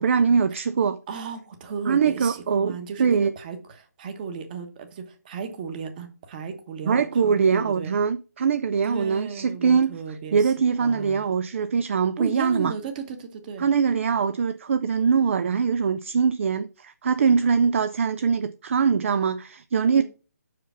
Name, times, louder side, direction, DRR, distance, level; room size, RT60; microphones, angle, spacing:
voice 1, 0.0-1.0 1.9-3.3 6.9-10.0 10.3-12.7 13.6-20.0, right 6 dB, 50° right, 0.4 m, -22 dB
voice 2, 1.1-7.9 8.8-10.5 10.8-11.3 12.2-13.7 20.0-20.1, right 5 dB, 30° right, 1.2 m, -35 dB
5.7 x 4.9 x 5.6 m
figure-of-eight pair, 155°, 9 cm